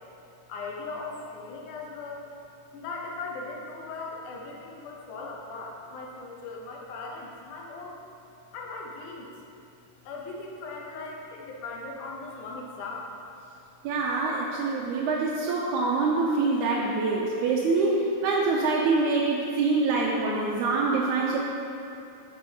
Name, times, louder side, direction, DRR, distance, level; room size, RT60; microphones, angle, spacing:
voice 1, 0.5-2.2 2.7-8.0 8.5-9.3 10.0-13.1, left 3 dB, 90° left, -1 dB, 2.4 m, -38 dB
voice 2, 13.8-21.4, right 3 dB, 85° right, -4 dB, 2.0 m, -25 dB
9.6 x 5.4 x 2.8 m, 2.6 s
omnidirectional pair, 3.5 m